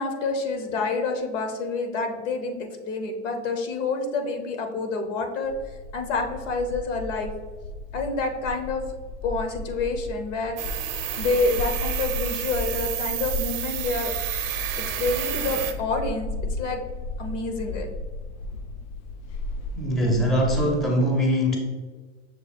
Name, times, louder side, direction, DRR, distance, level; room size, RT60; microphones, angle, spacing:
voice 1, 0.0-5.5 5.9-7.3 7.9-8.8 9.2-10.6 11.2-14.1 15.0-16.3 16.6-16.8 17.2-17.9, left 3 dB, 85° left, 4 dB, 0.9 m, -28 dB
sound 1, 5.4-20.9, left 2 dB, 70° left, 0.5 m, -35 dB
sound 2, 10.6-15.7, right 11 dB, 50° right, 0.6 m, -30 dB
voice 2, 19.8-21.6, equal, ahead, 0 dB, 0.4 m, -22 dB
6.3 x 2.3 x 3.3 m, 1.4 s
supercardioid pair, 130°, 36 cm